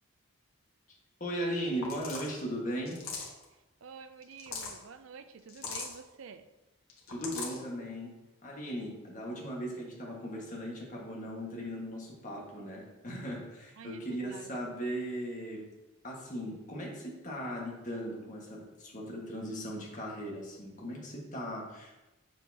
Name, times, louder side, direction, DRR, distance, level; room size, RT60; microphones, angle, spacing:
voice 1, 1.2-3.0 7.1-8.2 8.4-15.6 16.0-21.9, equal, 35° left, -2 dB, 1.6 m, -38 dB
sound 1, 1.8-2.3 2.8-3.4 4.2-4.8 5.5-5.9 6.9-7.6, left 5 dB, 80° left, 1.4 m, -39 dB
voice 2, 3.5-6.5 13.8-14.5, right 6 dB, 65° right, 10 dB, 0.4 m, -49 dB
7.1 x 6.3 x 2.8 m, 1.0 s
head